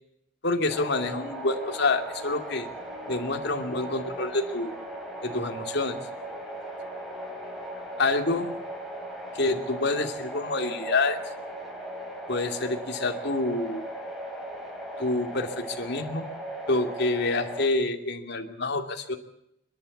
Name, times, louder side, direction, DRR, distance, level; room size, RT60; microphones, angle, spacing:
voice 1, 0.4-2.7 3.1-4.7 5.2-6.0 8.0-8.5 9.3-11.2 12.3-13.9 15.0-16.3 16.7-19.2, left 2 dB, 55° left, 4 dB, 2.7 m, -27 dB
sound 1, 0.7-17.7, right 1 dB, ahead, 4.4 m, -38 dB
27.0 x 11.5 x 8.6 m, 0.78 s
head